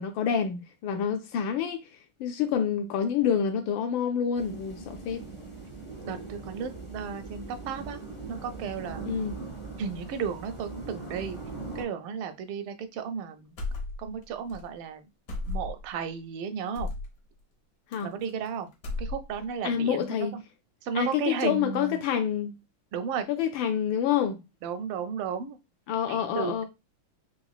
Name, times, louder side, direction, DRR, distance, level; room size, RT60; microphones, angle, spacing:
voice 1, 0.0-1.8 2.2-5.2 9.1-9.4 17.9-18.1 19.6-20.3 20.9-22.5 23.3-24.4 25.9-26.6, left 8 dB, 75° left, 1.2 m, -27 dB
sound 1, 4.3-11.8, right 4 dB, 10° left, 0.6 m, -40 dB
voice 2, 6.0-9.0 9.8-11.4 11.7-13.6 14.0-15.0 15.4-16.9 18.0-18.7 19.0-20.4 20.8-22.0 22.9-23.3 24.6-25.6 26.1-26.7, right 6 dB, 85° right, 1.5 m, -34 dB
sound 2, 13.6-14.2 14.5-14.6 15.3-15.9 16.7-17.1 17.9-18.5 18.7-19.5, left 2 dB, 55° left, 1.1 m, -34 dB
3.9 x 3.0 x 2.3 m
omnidirectional pair, 2.3 m